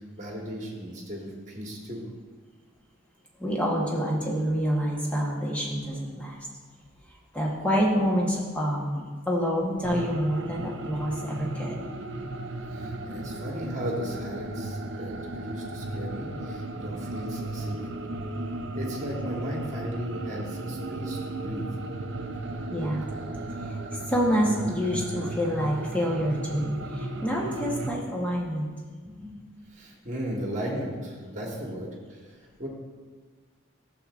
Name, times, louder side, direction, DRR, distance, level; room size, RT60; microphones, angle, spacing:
voice 1, 0.0-2.0 12.7-18.0 18.7-21.7 29.0-29.3 29.6-32.7, equal, 35° right, -1 dB, 1.3 m, -36 dB
voice 2, 3.4-6.4 7.3-11.8 22.7-23.0 23.9-28.7, equal, 5° left, -3 dB, 1.1 m, -27 dB
sound 1, 9.8-27.9, right 2 dB, 60° right, 0.6 m, -35 dB
11.5 x 7.1 x 2.5 m, 1.5 s
head